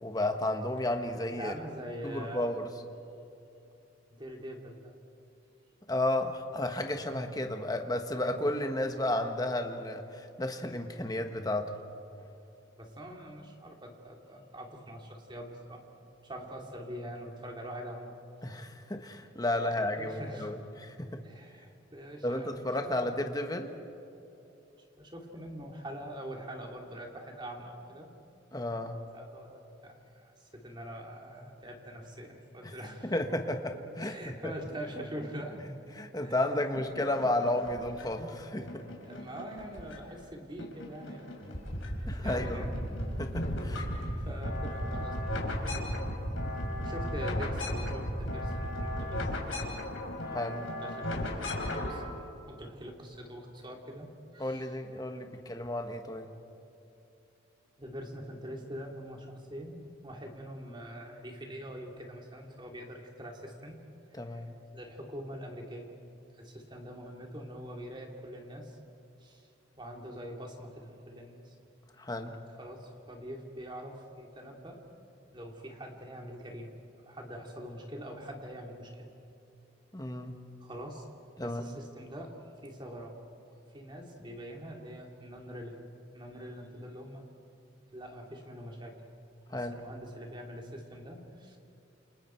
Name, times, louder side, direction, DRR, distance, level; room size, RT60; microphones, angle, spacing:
voice 1, 0.0-1.5 2.0-2.7 5.9-11.7 18.4-21.2 22.2-23.7 28.5-29.0 32.6-32.7 33.0-34.5 36.0-38.8 42.1-42.6 43.2-43.9 50.3-50.7 54.4-56.3 64.1-64.6 72.0-72.4 79.9-80.4 81.4-81.7 89.5-89.8, left 1 dB, 20° left, 5 dB, 1.5 m, -33 dB
voice 2, 1.3-2.5 4.1-4.9 12.8-15.8 16.2-18.2 19.5-20.5 21.2-23.1 24.9-28.1 29.1-33.1 34.0-35.6 36.2-36.7 38.5-38.6 39.0-41.5 42.1-42.7 44.2-45.9 46.8-49.8 50.7-52.0 52.5-54.1 54.3-54.7 57.8-63.8 64.1-64.4 64.7-65.9 66.3-68.8 69.2-69.5 69.8-71.5 72.6-74.8 75.3-79.1 80.6-81.1 81.4-82.3 82.6-83.2 83.7-85.9 86.1-87.3 87.9-89.0 89.5-91.6, equal, 25° right, 1 dB, 2.9 m, -44 dB
sound 1, 36.7-38.2 38.7-40.3 40.6-41.9 42.2-52.1, left 1 dB, 85° left, 3.7 m, -38 dB
sound 2, 41.4-49.2, equal, 40° left, 7.3 m, -36 dB
29.0 x 28.5 x 4.6 m, 2.9 s
head